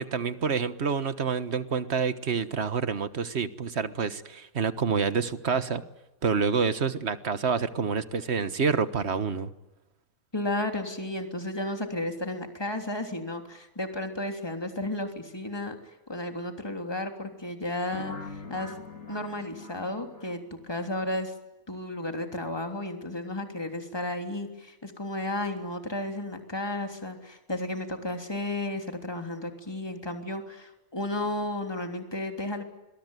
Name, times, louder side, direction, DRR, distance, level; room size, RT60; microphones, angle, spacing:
voice 1, 0.0-5.8 6.2-9.5, right 5 dB, 50° right, 12 dB, 1.6 m, -28 dB
voice 2, 10.3-15.7 16.1-18.7 19.1-21.3 21.7-32.6, left 1 dB, 15° left, 4 dB, 3.3 m, -33 dB
sound 1, 17.9-20.8, left 4 dB, 65° left, 2.9 m, -42 dB
27.5 x 22.0 x 9.3 m, 0.99 s
omnidirectional pair, 1.5 m